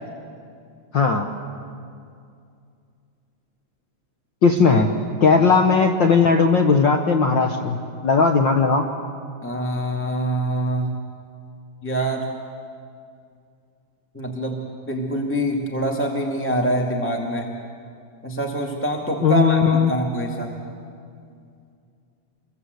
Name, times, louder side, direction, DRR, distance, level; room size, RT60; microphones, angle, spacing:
voice 1, 0.9-1.3 4.4-4.9 5.2-8.9 19.2-19.9, left 5 dB, 55° left, 4 dB, 1.3 m, -17 dB
voice 2, 9.4-10.9 11.8-12.3 14.1-17.5 18.2-20.5, right 1 dB, 5° left, 1 dB, 1.6 m, -25 dB
27.0 x 23.0 x 8.1 m, 2.4 s
omnidirectional pair, 3.4 m